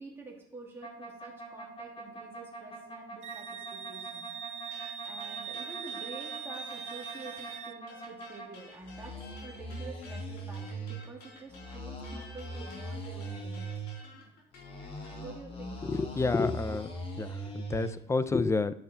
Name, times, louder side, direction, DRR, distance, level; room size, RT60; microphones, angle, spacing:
voice 1, 0.0-4.3 5.0-13.7 15.1-15.8, right 3 dB, 15° right, -3 dB, 2.7 m, -48 dB
sound 1, 0.8-8.5 8.8-11.0 11.5-14.0 14.5-17.9, right 2 dB, 35° left, 2.1 m, -41 dB
Wind instrument woodwind instrument, 3.2-7.8, right 9 dB, 40° right, 0.4 m, -41 dB
sound 2, 4.7-7.6 7.9-15.2, left 3 dB, 75° left, 3.7 m, -52 dB
voice 2, 15.8-16.9 17.2-18.8, left 4 dB, 15° left, 14 dB, 0.5 m, -29 dB
10.5 x 5.4 x 4.4 m, 0.71 s
cardioid pair, 110°, 17 cm